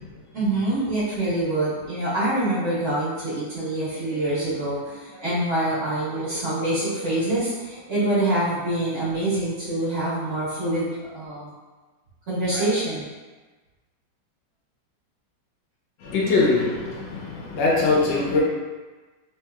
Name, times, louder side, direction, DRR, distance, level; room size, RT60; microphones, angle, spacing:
voice 1, 0.3-11.5 12.3-13.0, right 1 dB, 45° right, -11 dB, 1.3 m, -25 dB
voice 2, 16.0-18.4, left 3 dB, 85° left, -4 dB, 1.4 m, -22 dB
3.5 x 2.7 x 2.3 m, 1.3 s
omnidirectional pair, 2.0 m